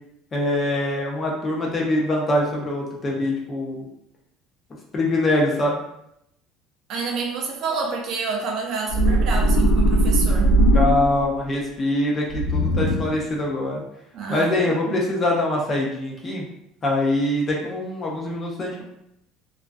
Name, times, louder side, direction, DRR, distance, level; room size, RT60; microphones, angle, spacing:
voice 1, 0.3-3.9 4.9-5.8 10.7-13.8 14.3-16.4 16.8-18.8, left 1 dB, 20° left, -2 dB, 0.4 m, -23 dB
voice 2, 6.9-10.5 14.1-15.0, right 4 dB, 40° right, 1 dB, 0.4 m, -28 dB
sound 1, 8.9-11.4 12.3-13.3, right 1 dB, 85° left, 0.6 m, -19 dB
2.3 x 2.3 x 2.3 m, 0.79 s
cardioid pair, 170°, 0 cm